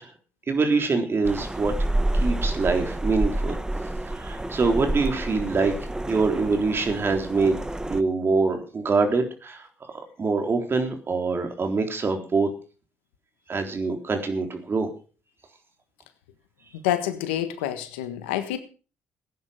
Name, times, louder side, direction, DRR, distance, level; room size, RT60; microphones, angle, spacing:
voice 1, 0.5-1.7 2.2-3.6 4.2-5.7 6.1-7.6 7.9-9.6 10.2-12.5 13.5-14.9, right 4 dB, 40° right, 5 dB, 3.7 m, -24 dB
sound 1, 1.2-8.0, right 1 dB, 10° right, 1.1 m, -28 dB
voice 2, 16.7-18.6, left 11 dB, 90° left, 10 dB, 1.5 m, -27 dB
16.5 x 9.4 x 5.1 m, 0.37 s
hypercardioid pair, 55°, 6 cm